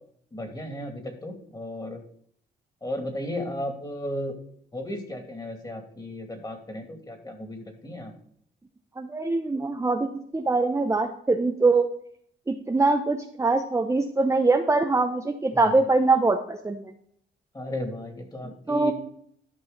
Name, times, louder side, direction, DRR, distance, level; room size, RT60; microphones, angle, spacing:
voice 1, 0.3-2.0 2.8-4.3 4.7-8.1 15.6-15.8 17.5-18.9, left 1 dB, 20° left, 4 dB, 2.8 m, -34 dB
voice 2, 9.0-11.9 12.5-16.9 18.7-18.9, right 3 dB, 15° right, 4 dB, 0.8 m, -23 dB
12.5 x 5.5 x 4.1 m, 0.64 s
cardioid pair, 90°, 20 cm